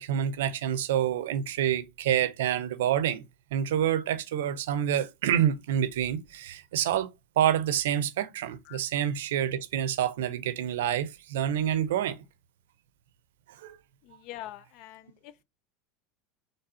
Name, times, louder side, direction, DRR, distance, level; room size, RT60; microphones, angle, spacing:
voice 1, 0.0-3.2 3.5-12.2 13.6-13.8, right 10 dB, 80° right, 0.5 m, -27 dB
voice 2, 14.0-15.4, left 14 dB, 60° left, 0.3 m, -44 dB
4.1 x 3.3 x 2.7 m
hypercardioid pair, 95°, 0 cm